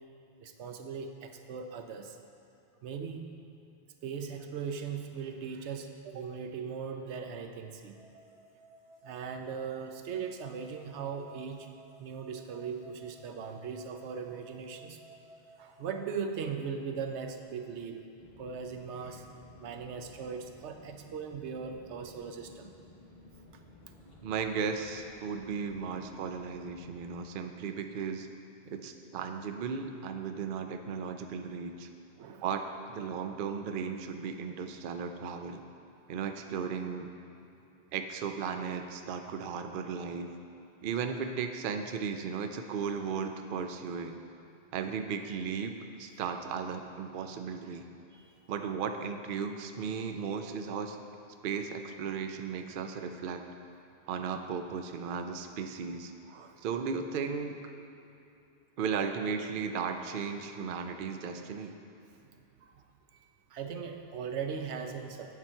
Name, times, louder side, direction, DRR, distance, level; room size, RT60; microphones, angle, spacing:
voice 1, 0.4-2.2 2.8-3.3 4.0-8.0 9.0-11.7 12.0-15.0 15.6-18.0 18.4-19.3 19.6-22.7 32.2-32.4 48.1-48.4 56.3-56.6 62.1-62.8 63.1-65.4, right 6 dB, 90° right, 6 dB, 0.9 m, -39 dB
sound 1, 7.9-16.0, right 1 dB, 40° right, 1.6 m, -57 dB
sound 2, 18.2-27.1, left 1 dB, 40° left, 1.3 m, -55 dB
voice 2, 24.2-28.3 28.7-31.9 32.4-32.6 32.9-35.6 36.1-37.1 37.9-40.3 40.8-44.2 44.7-47.8 48.5-51.0 51.4-53.4 54.1-56.1 56.6-57.6 58.8-61.8, right 6 dB, 60° right, 6 dB, 0.7 m, -35 dB
8.3 x 7.6 x 4.4 m, 2.7 s
omnidirectional pair, 1.1 m